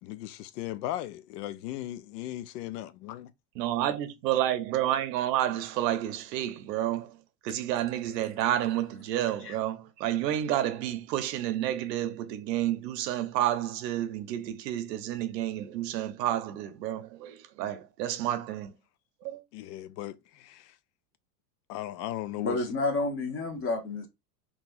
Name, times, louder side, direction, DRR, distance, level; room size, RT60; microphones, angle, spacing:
voice 1, 0.0-3.3 19.5-20.8 21.7-22.7, left 14 dB, 75° left, 0.5 m, -37 dB
voice 2, 3.6-7.2 7.4-18.7 19.2-19.4, right 12 dB, 80° right, 0.8 m, -30 dB
voice 3, 22.4-24.1, left 3 dB, 25° left, 0.9 m, -30 dB
3.8 x 2.3 x 2.5 m
supercardioid pair, 115°, 49 cm